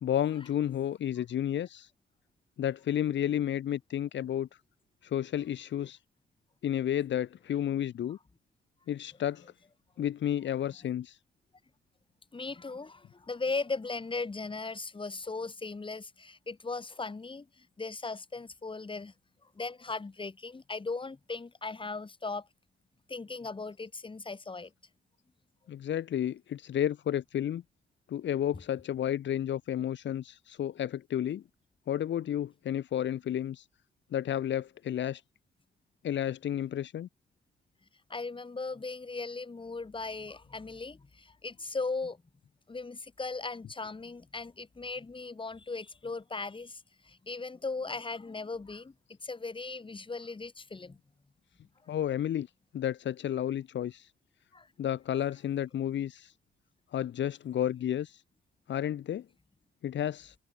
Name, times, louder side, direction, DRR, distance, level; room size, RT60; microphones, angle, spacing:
voice 1, 0.0-1.9 2.6-4.5 5.0-6.0 6.6-8.2 8.9-9.5 10.0-11.2 25.7-27.6 28.1-31.4 31.9-33.6 34.1-35.2 36.0-37.1 51.9-52.5 52.7-54.1 54.8-56.3 56.9-58.2 58.7-59.2 59.8-60.3, left 10 dB, 65° left, 3.0 m, -31 dB
voice 2, 12.3-19.1 19.6-22.5 23.1-24.7 38.1-42.2 42.7-48.9 49.2-51.0 54.5-54.7, left 3 dB, 25° left, 7.5 m, -38 dB
cardioid pair, 90°, 20 cm